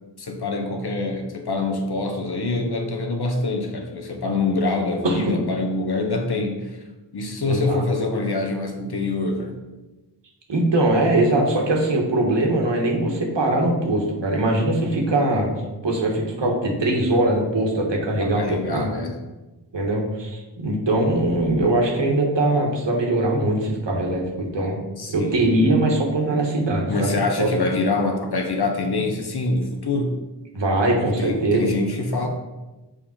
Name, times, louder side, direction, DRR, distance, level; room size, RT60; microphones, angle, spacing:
voice 1, 0.2-6.7 7.1-9.6 18.2-19.2 25.0-25.4 26.9-30.2 31.0-32.3, left 3 dB, 65° left, 4 dB, 1.2 m, -25 dB
voice 2, 7.4-7.9 10.5-15.5 15.8-18.9 19.7-24.8 25.1-27.1 27.4-27.7 30.5-31.8, right 1 dB, 90° right, 0 dB, 1.6 m, -21 dB
7.2 x 5.0 x 4.4 m, 1.1 s
wide cardioid pair, 75°, 42 cm